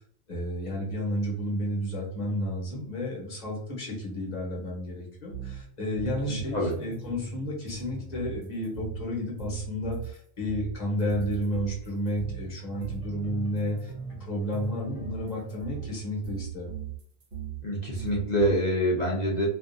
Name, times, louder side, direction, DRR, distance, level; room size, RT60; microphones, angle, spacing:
voice 1, 0.3-13.9 14.2-16.8, equal, 35° left, -2 dB, 0.9 m, -32 dB
sound 1, 5.3-10.2 10.5-17.6 18.0-18.5, right 7 dB, 65° right, 1.0 m, -39 dB
voice 2, 6.3-6.7 17.6-19.5, equal, 55° left, -4 dB, 0.4 m, -26 dB
2.5 x 2.4 x 2.5 m, 0.67 s
omnidirectional pair, 1.4 m